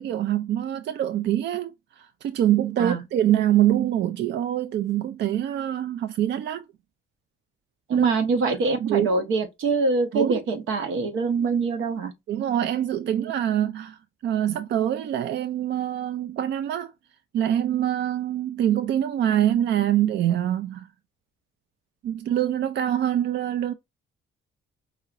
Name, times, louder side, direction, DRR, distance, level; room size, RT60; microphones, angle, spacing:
voice 1, 0.0-6.6 7.9-8.0 8.8-9.1 10.1-10.4 12.3-16.9 17.3-20.9 22.0-23.7, right 11 dB, 60° right, 0.4 m, -24 dB
voice 2, 7.9-12.1, right 4 dB, 85° right, 1.0 m, -24 dB
4.8 x 2.8 x 2.5 m
cardioid pair, 90°, 20 cm